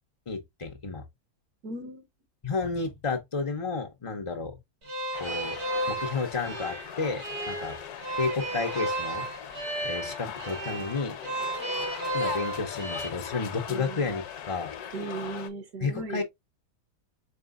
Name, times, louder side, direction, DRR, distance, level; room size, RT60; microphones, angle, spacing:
voice 1, 0.3-1.0 2.4-4.6 5.2-5.6 5.9-7.8 8.2-9.2 9.8-11.2 12.1-14.7 15.8-16.2, left 4 dB, 55° left, 0.3 m, -31 dB
voice 2, 1.6-2.0 13.7-14.2 14.9-16.2, right 3 dB, 70° right, 1.5 m, -37 dB
sound 1, 4.8-13.1, right 2 dB, 90° right, 2.2 m, -33 dB
sound 2, 5.1-15.5, left 9 dB, 70° left, 1.2 m, -40 dB
4.5 x 3.8 x 2.4 m
omnidirectional pair, 1.7 m